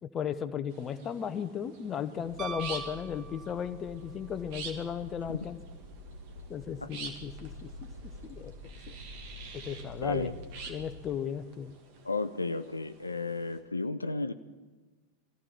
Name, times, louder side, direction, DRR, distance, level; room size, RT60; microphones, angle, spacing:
voice 1, 0.0-5.6 6.5-7.7 8.2-8.5 9.5-10.3 10.7-11.7, left 8 dB, 25° left, 11 dB, 0.9 m, -35 dB
sound 1, 0.7-13.6, right 5 dB, 45° right, 2.0 m, -48 dB
sound 2, 2.1-11.0, left 1 dB, 70° right, 4.5 m, -47 dB
Piano, 2.4-4.0 6.3-6.4, right 6 dB, 25° right, 0.7 m, -42 dB
voice 2, 10.0-10.3 12.0-14.3, left 3 dB, 80° left, 11 dB, 0.5 m, -33 dB
22.0 x 14.5 x 4.4 m, 1.3 s
figure-of-eight pair, 90°, 0 cm